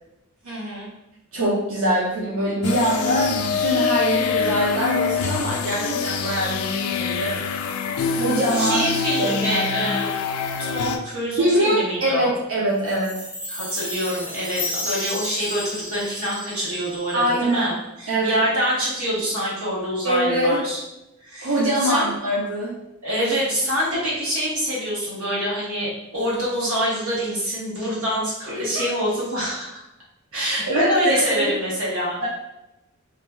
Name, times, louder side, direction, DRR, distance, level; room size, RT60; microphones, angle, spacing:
voice 1, 0.4-0.9 8.0-10.1 10.6-12.3 13.5-20.8 21.2-22.1 23.0-29.8 30.3-32.2, equal, 85° right, -6 dB, 1.1 m, -26 dB
voice 2, 1.3-7.3 7.9-8.9 9.2-10.0 11.4-13.1 17.1-17.6 18.1-18.5 20.0-20.6 21.4-22.8 28.5-28.8 30.3-31.5 32.2-32.3, right 1 dB, 65° right, -6 dB, 0.5 m, -23 dB
sound 1, 2.6-11.0, left 6 dB, 85° left, 0.3 m, -25 dB
Chime, 12.9-17.3, left 2 dB, 5° right, 0.4 m, -32 dB
2.5 x 2.2 x 3.1 m, 0.92 s
head